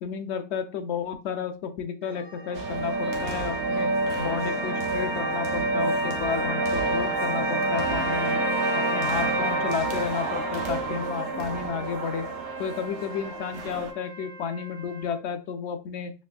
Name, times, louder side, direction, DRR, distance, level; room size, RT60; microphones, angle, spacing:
voice 1, 0.0-8.4 8.7-12.3 12.6-16.1, left 7 dB, 80° left, 8 dB, 0.9 m, -32 dB
sound 1, 2.0-13.1, right 2 dB, 45° right, 1.4 m, -28 dB
sound 2, 2.5-13.9, right 4 dB, 80° right, 1.0 m, -37 dB
Trumpet, 7.6-15.3, right 4 dB, 25° right, 0.5 m, -41 dB
3.3 x 3.2 x 2.3 m, 0.31 s
omnidirectional pair, 1.2 m